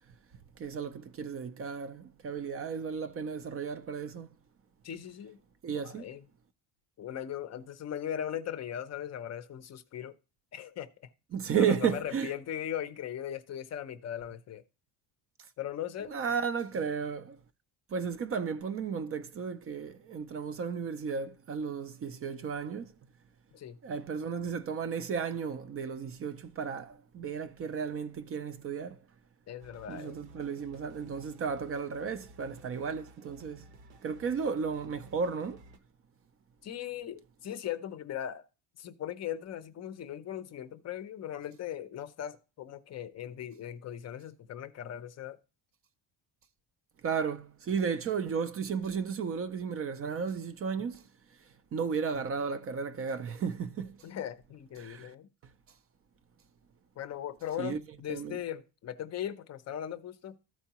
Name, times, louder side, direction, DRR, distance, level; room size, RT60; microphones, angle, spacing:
voice 1, 0.6-4.3 5.6-6.1 11.3-12.3 16.1-17.4 17.9-22.9 23.8-29.0 29.9-33.7 34.0-35.6 47.0-51.0 51.7-54.0 54.8-55.1 57.6-57.8 58.1-58.4, right 6 dB, 35° right, 0.4 m, -34 dB
voice 2, 4.8-5.4 5.7-6.3 7.0-10.2 10.5-10.9 11.5-14.6 15.6-16.2 23.5-23.8 29.5-30.3 36.6-38.5 38.8-45.4 54.0-55.3 57.0-60.4, left 10 dB, 35° left, 0.5 m, -39 dB
sound 1, 29.6-35.8, right 1 dB, 80° right, 1.1 m, -55 dB
13.5 x 4.5 x 2.9 m
cardioid pair, 165°, 45 cm